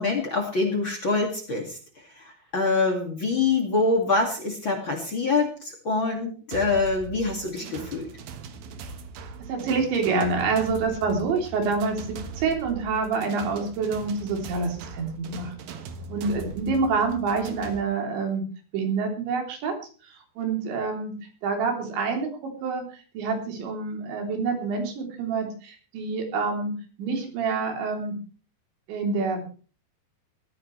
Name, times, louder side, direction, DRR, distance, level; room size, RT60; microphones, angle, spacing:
voice 1, 0.0-8.1, left 3 dB, 35° left, 3 dB, 2.3 m, -25 dB
sound 1, 6.5-17.8, right 4 dB, 65° right, 2.8 m, -40 dB
voice 2, 9.5-15.6 16.1-18.4 18.7-19.8 20.4-21.2 21.4-22.9 23.2-26.7 27.0-28.2 28.9-29.5, right 4 dB, 85° right, 2 dB, 5.6 m, -27 dB
20.0 x 14.0 x 3.3 m, 0.38 s
omnidirectional pair, 5.1 m